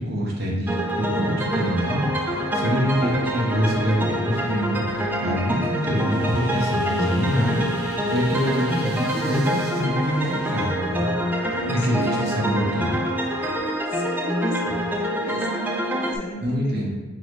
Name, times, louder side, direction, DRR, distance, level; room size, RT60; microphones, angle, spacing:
voice 1, 0.0-4.8 5.2-11.1 11.7-13.0 16.4-16.9, equal, 50° right, -3 dB, 0.9 m, -25 dB
sound 1, 0.7-16.2, equal, 10° right, 0.3 m, -26 dB
sound 2, 1.7-13.6, right 1 dB, 80° right, 1.3 m, -39 dB
voice 2, 11.5-13.1 13.8-16.9, left 1 dB, 45° left, 0 dB, 0.6 m, -35 dB
3.8 x 3.1 x 3.8 m, 1.2 s
head